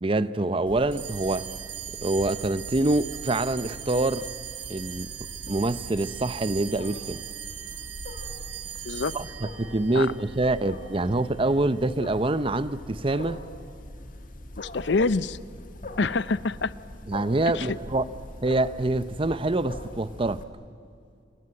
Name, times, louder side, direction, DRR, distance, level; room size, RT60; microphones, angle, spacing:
voice 1, 0.0-1.5 2.0-4.3 4.7-5.1 5.5-7.2 9.1-13.4 17.1-18.1 18.4-20.4, right 2 dB, 30° right, 0.7 m, -25 dB
Wild animals, 0.7-20.4, left 1 dB, 45° left, 2.1 m, -43 dB
sound 1, 0.9-11.6, right 10 dB, 75° right, 2.3 m, -40 dB
voice 2, 14.6-15.4 16.0-16.7 17.5-17.8, left 3 dB, 65° left, 0.6 m, -26 dB
27.5 x 22.0 x 7.8 m
head